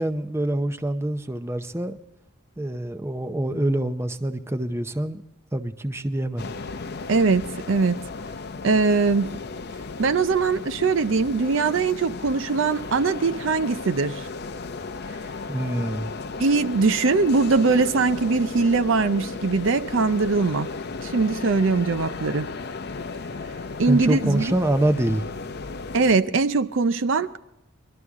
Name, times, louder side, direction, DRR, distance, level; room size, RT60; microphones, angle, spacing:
voice 1, 0.0-2.0 2.6-5.2 5.5-6.5 15.5-16.1 23.9-25.2, right 1 dB, 10° right, 0.6 m, -25 dB
sound 1, 6.4-26.2, left 4 dB, 50° left, 0.6 m, -35 dB
voice 2, 7.1-8.0 8.6-9.3 10.0-14.3 16.4-20.7 21.0-22.5 23.8-24.5 25.9-27.4, right 4 dB, 60° right, 0.5 m, -21 dB
21.0 x 12.5 x 3.6 m
head